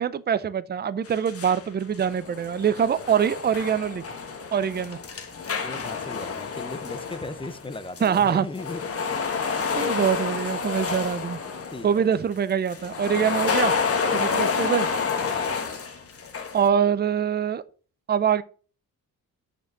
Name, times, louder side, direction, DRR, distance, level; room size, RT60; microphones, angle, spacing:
voice 1, 0.0-4.0 4.5-5.0 8.0-8.5 9.8-11.4 11.8-13.7 14.1-14.9 16.5-17.6 18.1-18.4, right 8 dB, 25° right, 0.5 m, -24 dB
sound 1, 1.0-1.6 1.9-8.2 8.5-11.9 12.7-16.7, left 5 dB, 40° left, 1.3 m, -29 dB
voice 2, 5.6-8.8 11.7-12.0 14.2-14.4 15.3-15.5, left 2 dB, 15° left, 0.7 m, -37 dB
6.8 x 6.4 x 5.8 m
cardioid pair, 135°, 37 cm